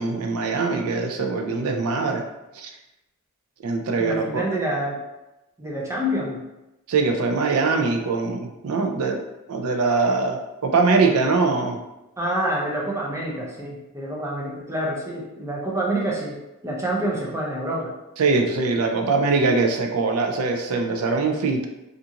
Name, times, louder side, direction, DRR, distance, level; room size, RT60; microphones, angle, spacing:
voice 1, 0.0-2.2 2.6-2.7 3.6-4.4 6.9-9.2 9.5-11.8 18.2-21.7, right 4 dB, 75° right, 3 dB, 0.4 m, -22 dB
voice 2, 4.0-5.0 5.6-6.5 12.2-16.4 16.6-17.9, right 1 dB, 15° right, -3 dB, 0.5 m, -27 dB
2.5 x 2.4 x 2.8 m, 0.97 s
head